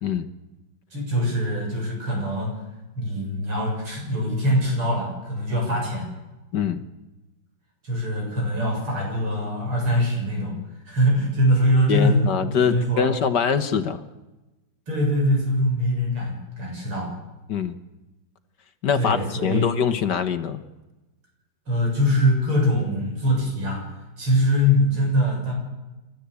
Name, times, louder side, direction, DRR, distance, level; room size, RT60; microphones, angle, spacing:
voice 1, 0.9-2.6 3.0-6.1 7.8-10.6 10.9-13.1 14.9-17.1 19.0-19.8 21.7-23.8 24.2-25.5, equal, 80° right, -1 dB, 8.1 m, -23 dB
voice 2, 11.9-14.0 17.5-17.8 18.8-20.6, left 7 dB, 60° left, 11 dB, 1.6 m, -23 dB
28.0 x 12.5 x 8.3 m, 1.1 s
omnidirectional pair, 2.3 m